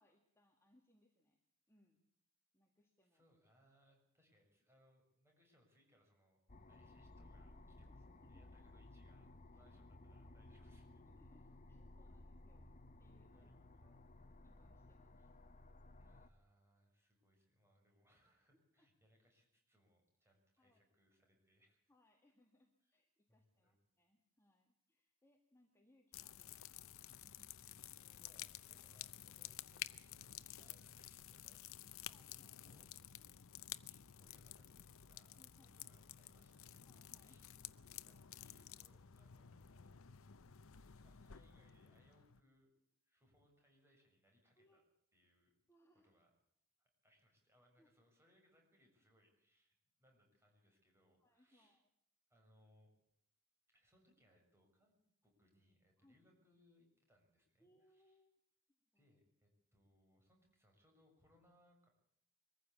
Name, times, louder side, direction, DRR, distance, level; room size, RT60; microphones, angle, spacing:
voice 1, 0.0-1.4 1.7-2.0 2.5-3.2 7.8-8.4 9.5-9.6 11.0-12.7 13.0-13.5 13.8-15.3 18.5-18.9 20.2-20.8 21.9-27.5 32.1-32.8 35.4-36.0 36.8-37.4 38.0-38.2 44.6-44.9 45.7-46.1 47.8-47.9 51.2-51.9 56.0-56.2 57.6-58.4 58.9-59.1, left 1 dB, 10° left, 2 dB, 2.0 m, -74 dB
voice 2, 3.0-6.4 6.7-9.3 9.5-11.1 13.3-13.9 15.2-15.3 16.0-21.8 22.8-23.0 23.3-23.8 27.8-32.9 33.9-34.7 35.1-35.4 35.7-36.8 37.2-37.5 38.0-39.9 41.0-42.7 43.0-44.8 45.1-45.6 46.0-46.3 46.8-51.8 52.3-52.9 53.7-58.2 58.9-61.9, equal, 10° right, 1 dB, 6.9 m, -74 dB
sound 1, 6.5-16.3, left 2 dB, 35° left, 1.0 m, -59 dB
sound 2, 26.1-42.4, left 11 dB, 65° left, 0.7 m, -53 dB
23.5 x 15.0 x 8.4 m, 0.71 s
head